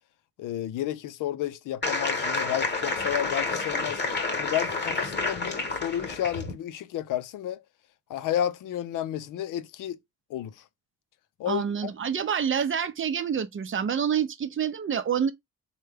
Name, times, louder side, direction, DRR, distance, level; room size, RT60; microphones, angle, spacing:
voice 1, 0.4-4.0 4.4-7.6 8.1-10.0 10.3-10.6 11.4-11.9, left 11 dB, 70° left, 0.5 m, -31 dB
sound 1, 1.8-6.5, left 3 dB, 30° left, 1.1 m, -29 dB
voice 2, 11.5-15.3, right 7 dB, 40° right, 0.6 m, -27 dB
3.3 x 2.2 x 3.3 m
supercardioid pair, 60°, 33 cm